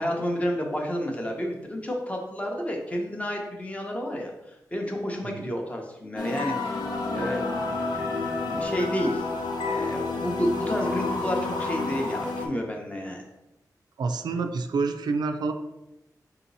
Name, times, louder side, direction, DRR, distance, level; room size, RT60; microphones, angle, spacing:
voice 1, 0.0-6.8 7.1-7.4 8.5-9.3 9.6-13.2, equal, 20° left, 1 dB, 0.6 m, -30 dB
sound 1, 6.2-12.5, left 3 dB, 85° left, 0.6 m, -29 dB
voice 2, 14.0-15.5, right 4 dB, 85° right, 6 dB, 0.4 m, -28 dB
3.9 x 2.9 x 4.0 m, 0.94 s
wide cardioid pair, 160°, 7 cm